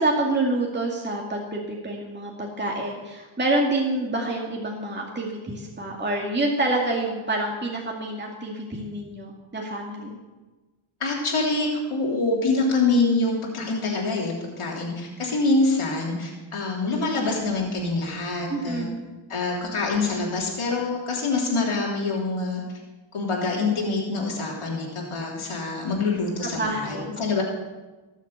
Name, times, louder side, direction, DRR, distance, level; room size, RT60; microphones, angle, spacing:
voice 1, 0.0-10.2 18.5-19.0 26.4-27.3, right 2 dB, 20° right, -2 dB, 2.2 m, -27 dB
voice 2, 11.0-18.9 19.3-22.6 23.1-27.4, left 3 dB, 85° left, -2 dB, 3.4 m, -25 dB
18.0 x 7.3 x 8.1 m, 1.2 s
wide cardioid pair, 105°, 49 cm